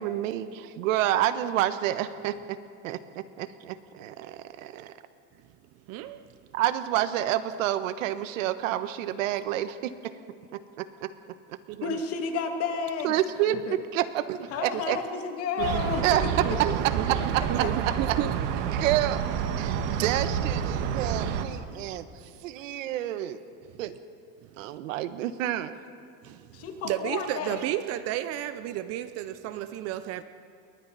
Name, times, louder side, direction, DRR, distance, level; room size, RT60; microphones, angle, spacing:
voice 1, 0.0-2.6 2.8-4.9 6.5-9.9 10.5-11.1 11.5-11.6 13.0-13.6 13.9-14.2 14.6-15.0 16.0-16.2 17.3-17.6 18.1-18.2 18.7-19.2 19.6-22.1 22.4-23.4 23.8-23.9 24.6-25.7, right 13 dB, 85° right, 1.3 m, -29 dB
voice 2, 5.9-6.2 11.7-12.0 14.3-14.4 14.7-14.8 15.6-15.8 16.4-17.2 17.5-18.3 23.7-23.8 24.4-24.7 26.2-30.2, right 13 dB, 40° right, 0.8 m, -33 dB
voice 3, 11.8-13.1 13.4-13.8 14.5-16.8 17.6-17.7 26.5-27.6, left 5 dB, 40° left, 2.5 m, -32 dB
sound 1, 15.6-21.5, right 8 dB, 65° right, 1.8 m, -29 dB
28.5 x 23.0 x 4.2 m
supercardioid pair, 145°, 38 cm